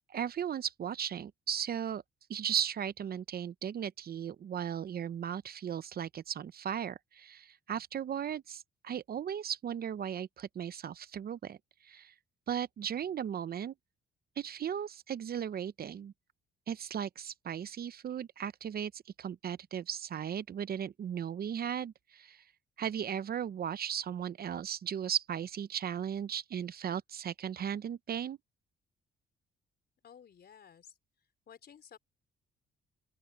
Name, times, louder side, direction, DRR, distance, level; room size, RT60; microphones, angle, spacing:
voice 1, 0.1-2.0 2.3-11.6 11.8-12.1 12.5-13.7 14.4-16.1 16.7-22.4 22.8-28.4, right 9 dB, 50° right, 0.7 m, -36 dB
voice 2, 30.0-30.9 31.5-32.0, left 8 dB, 55° left, 4.3 m, -54 dB
open air
cardioid pair, 90°, 20 cm